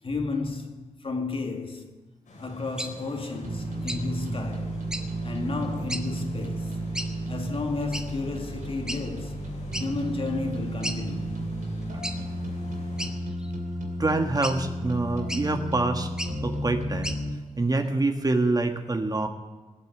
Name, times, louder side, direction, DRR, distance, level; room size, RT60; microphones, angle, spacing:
voice 1, 0.0-2.0 2.4-4.8 5.2-6.8 7.3-9.4 9.8-11.5, left 3 dB, 45° left, 2.0 m, -32 dB
sound 1, 2.2-13.1, left 1 dB, 85° left, 5.7 m, -45 dB
sound 2, 2.8-2.9 3.9-4.0 4.9-5.1 5.9-6.0 6.9-7.1 7.9-8.1 8.9-9.0 9.7-9.9 10.3-10.4 10.8-11.0 12.0-12.2 13.0-13.5 14.4-14.6 15.3-15.4 16.1-16.3 17.0-17.2, equal, 5° right, 1.3 m, -33 dB
sound 3, 3.4-17.3, right 1 dB, 85° right, 2.8 m, -33 dB
voice 2, 14.0-16.1 16.4-17.1 17.6-19.3, right 2 dB, 30° right, 1.4 m, -26 dB
19.5 x 8.2 x 7.8 m
cardioid pair, 70°, 13 cm